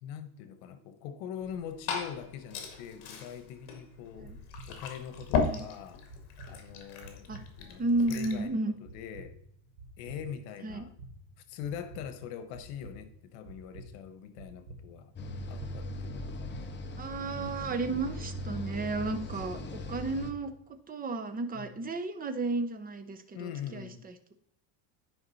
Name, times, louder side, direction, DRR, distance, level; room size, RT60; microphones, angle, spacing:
voice 1, 0.0-4.3 4.7-6.0 6.5-9.4 10.0-10.9 11.4-15.1 15.5-16.7 18.9-19.0 21.5-21.8 23.3-24.0, left 8 dB, 80° left, 10 dB, 1.2 m, -43 dB
Glass / Fill (with liquid), 1.4-8.5, left 5 dB, 55° left, 2.0 m, -37 dB
sound 1, 4.3-20.6, right 2 dB, 80° right, 2.1 m, -51 dB
voice 2, 7.8-8.7 10.6-10.8 17.0-20.5 20.9-24.3, right 2 dB, 20° right, 9 dB, 0.7 m, -33 dB
sound 2, 15.2-20.3, left 1 dB, 25° left, 0.7 m, -39 dB
9.8 x 5.1 x 4.1 m, 0.70 s
cardioid pair, 150°, 48 cm